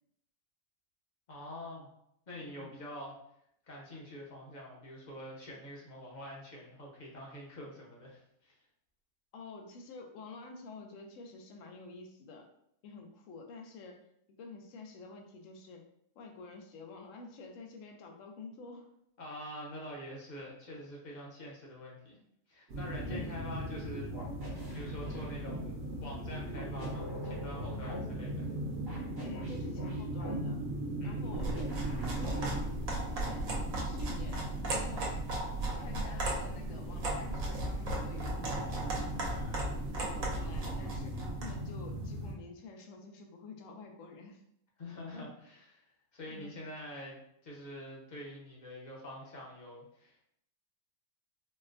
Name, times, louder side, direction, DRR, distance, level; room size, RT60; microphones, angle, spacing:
voice 1, 1.3-1.9 2.3-3.1 3.6-8.5 19.2-22.2 22.5-24.1 24.4-25.7 26.0-28.5 31.0-31.5 44.8-45.8 46.1-50.2, left 1 dB, 40° left, -3 dB, 0.7 m, -46 dB
voice 2, 2.4-2.7 9.3-12.5 12.8-14.0 14.4-15.8 16.2-18.9 23.0-23.4 29.2-30.6 31.0-31.5 32.1-32.7 33.2-33.5 33.8-34.4 34.7-35.1 35.7-39.2 40.2-44.4 46.3-46.6, left 3 dB, 75° left, 4 dB, 0.9 m, -49 dB
sound 1, 22.7-42.3, right 1 dB, 65° right, 0.9 m, -39 dB
sound 2, 23.1-23.3 24.1-25.6 26.5-28.0 28.9-30.4 31.2-32.6, equal, 25° right, 0.6 m, -46 dB
sound 3, 31.3-41.6, right 1 dB, 85° right, 1.2 m, -36 dB
4.2 x 2.1 x 2.5 m, 0.74 s
omnidirectional pair, 1.4 m